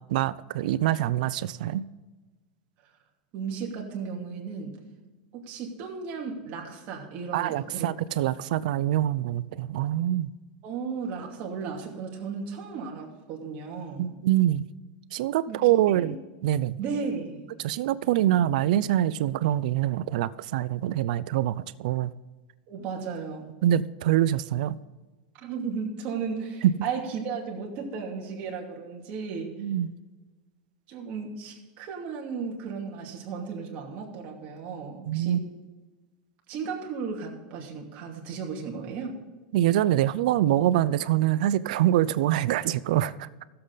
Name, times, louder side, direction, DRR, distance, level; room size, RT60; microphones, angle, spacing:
voice 1, 0.1-1.8 7.3-10.3 14.0-14.7 15.1-16.2 16.4-16.8 17.6-22.1 23.6-24.8 26.6-26.7 29.6-29.9 35.1-35.4 39.5-43.3, right 12 dB, 65° right, 17 dB, 0.5 m, -25 dB
voice 2, 3.3-4.8 5.3-7.9 10.6-14.1 15.5-15.7 16.0-16.2 16.8-17.5 18.0-18.1 22.7-23.5 25.4-29.6 30.9-35.4 36.5-39.2, right 5 dB, 40° right, 0 dB, 2.6 m, -35 dB
15.5 x 7.8 x 4.0 m, 1.2 s
supercardioid pair, 160°, 5 cm